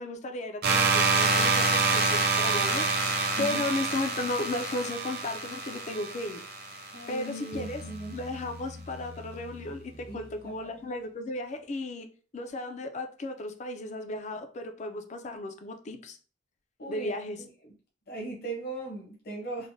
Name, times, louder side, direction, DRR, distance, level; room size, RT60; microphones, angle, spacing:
voice 1, 0.0-2.9 3.4-6.4 7.1-12.1 12.3-16.2 16.9-17.4, left 2 dB, 40° left, 7 dB, 0.4 m, -35 dB
sound 1, 0.6-7.4, right 3 dB, 55° right, 0.5 m, -27 dB
voice 2, 6.9-8.2 10.1-10.7 16.8-17.1 17.6-17.7 18.1-19.7, right 2 dB, 55° left, -2 dB, 0.8 m, -38 dB
Bass guitar, 7.5-10.9, left 2 dB, 80° left, 0.7 m, -45 dB
3.2 x 2.1 x 2.6 m, 0.39 s
head